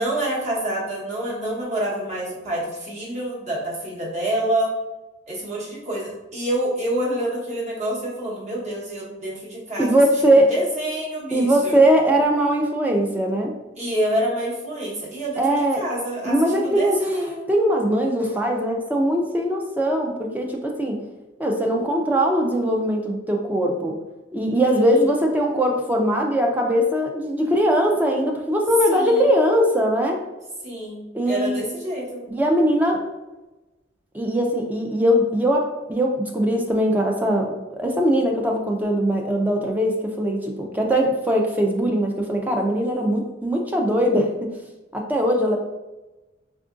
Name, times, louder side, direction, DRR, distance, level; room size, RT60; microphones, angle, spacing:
voice 1, 0.0-4.7 5.3-10.0 10.5-11.8 13.8-17.5 24.7-25.1 28.9-29.3 30.6-32.2, right 1 dB, 40° right, -5 dB, 1.0 m, -27 dB
voice 2, 9.8-10.5 11.3-13.5 15.4-15.8 16.2-17.0 17.5-21.0 21.4-23.9 24.3-30.2 31.1-31.6 32.3-33.0 34.1-44.5 44.9-45.6, equal, 10° right, 1 dB, 0.3 m, -21 dB
4.4 x 2.4 x 2.4 m, 1.1 s
head